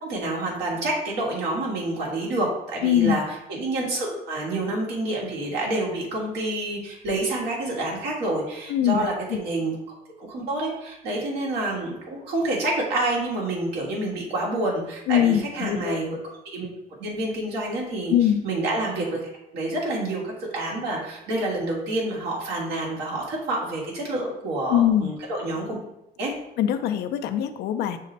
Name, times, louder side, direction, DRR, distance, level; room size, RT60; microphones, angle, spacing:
voice 1, 0.0-9.7 10.2-16.7 17.0-18.1 18.4-25.7 26.2-26.3, right 2 dB, 80° right, -3 dB, 1.6 m, -28 dB
voice 2, 2.8-3.2 8.7-9.1 15.1-16.0 18.1-18.4 24.7-25.1 26.6-28.0, left 10 dB, 75° left, 8 dB, 0.5 m, -22 dB
6.3 x 2.1 x 3.9 m, 0.88 s
cardioid pair, 110°, 17 cm